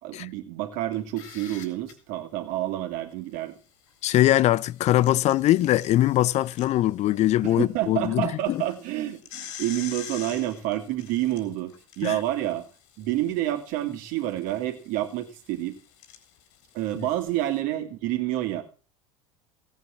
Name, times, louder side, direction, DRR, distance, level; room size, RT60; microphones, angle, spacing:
voice 1, 0.0-3.5 7.4-12.6 13.0-15.8 16.7-18.6, right 14 dB, 55° right, 2.7 m, -29 dB
sound 1, 0.9-1.9 3.9-7.5 7.8-7.9 8.4-17.6, left 9 dB, 65° left, 4.0 m, -46 dB
voice 2, 4.0-8.6 12.0-12.2, left 14 dB, 45° left, 0.6 m, -22 dB
17.0 x 9.2 x 6.2 m
hypercardioid pair, 75°, 16 cm